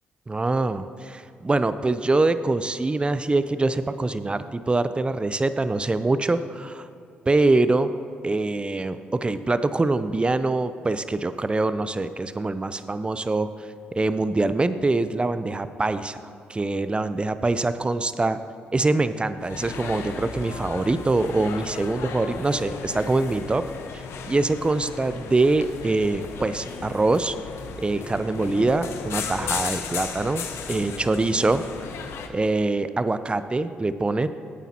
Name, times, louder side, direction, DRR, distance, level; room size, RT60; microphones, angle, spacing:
voice 1, 0.3-6.9 7.3-7.9 8.2-13.5 14.0-16.2 16.5-18.4 18.7-23.6 23.9-27.4 27.8-31.6 32.3-34.3, right 2 dB, 20° right, 12 dB, 0.6 m, -24 dB
sound 1, 19.4-32.3, left 5 dB, 65° left, 0.7 m, -35 dB
13.5 x 9.0 x 2.9 m, 2.7 s
hypercardioid pair, 45°, 5 cm